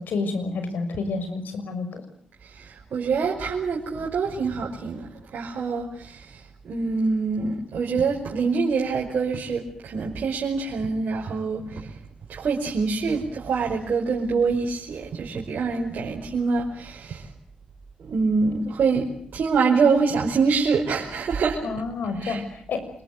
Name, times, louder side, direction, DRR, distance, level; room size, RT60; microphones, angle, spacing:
voice 1, 0.0-2.0 21.6-22.8, left 4 dB, 70° left, 8 dB, 6.3 m, -29 dB
voice 2, 2.5-6.4 6.6-11.9 12.3-17.2 18.0-21.6 22.2-22.4, right 4 dB, 65° right, -2 dB, 5.2 m, -25 dB
26.0 x 23.0 x 8.0 m, 0.65 s
hypercardioid pair, 40°, 3 cm